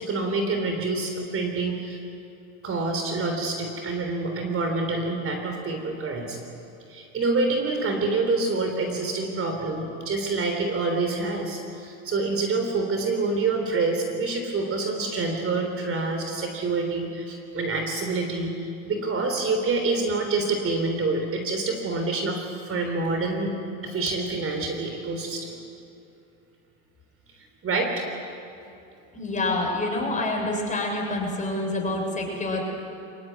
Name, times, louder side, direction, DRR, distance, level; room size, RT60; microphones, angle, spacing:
voice 1, 0.0-2.0 2.6-6.4 6.9-23.5 23.8-25.6 27.6-28.1, right 3 dB, 35° right, 4 dB, 3.7 m, -27 dB
voice 2, 29.1-32.6, left 2 dB, 20° left, 0 dB, 7.0 m, -27 dB
24.0 x 19.5 x 9.5 m, 2.7 s
supercardioid pair, 100°, 39 cm